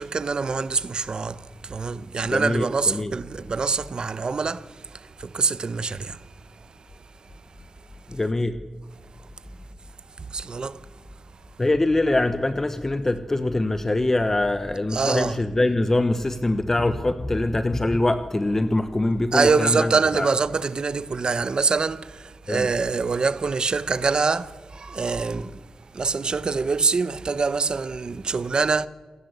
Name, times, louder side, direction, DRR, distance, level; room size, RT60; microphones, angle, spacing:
voice 1, 0.0-6.2 10.2-10.9 14.9-15.4 19.3-25.6 25.9-28.9, right 4 dB, 45° right, 0.9 m, -25 dB
voice 2, 2.3-3.1 8.1-8.6 11.6-20.3 22.5-22.7, left 2 dB, 20° left, 1.0 m, -23 dB
27.5 x 18.0 x 8.1 m
wide cardioid pair, 155°, 2 cm